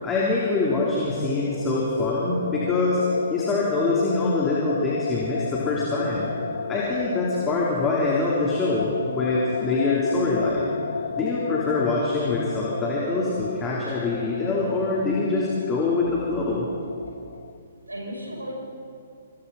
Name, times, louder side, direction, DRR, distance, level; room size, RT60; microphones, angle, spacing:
voice 1, 0.0-3.0 3.3-6.3 6.7-10.8 11.2-16.7, left 3 dB, 15° left, -5 dB, 4.0 m, -24 dB
sound 1, 0.7-17.6, left 5 dB, 65° left, 1.0 m, -33 dB
voice 2, 17.1-18.5, right 1 dB, 85° right, -1 dB, 6.7 m, -37 dB
28.0 x 27.0 x 4.4 m, 2.4 s
figure-of-eight pair, 120°, 0 cm